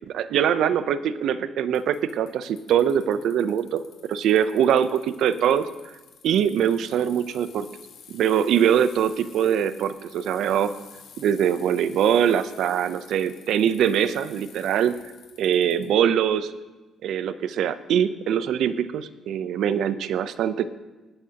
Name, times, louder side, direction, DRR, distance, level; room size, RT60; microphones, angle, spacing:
voice 1, 0.1-3.8 4.1-5.7 6.2-7.7 8.1-10.7 11.2-15.0 15.4-16.5 17.0-20.7, right 9 dB, 70° right, 13 dB, 0.6 m, -23 dB
Bicycle, 1.7-15.9, left 7 dB, 80° left, 2.9 m, -50 dB
19.5 x 11.5 x 2.9 m, 1.2 s
cardioid pair, 135°, 0 cm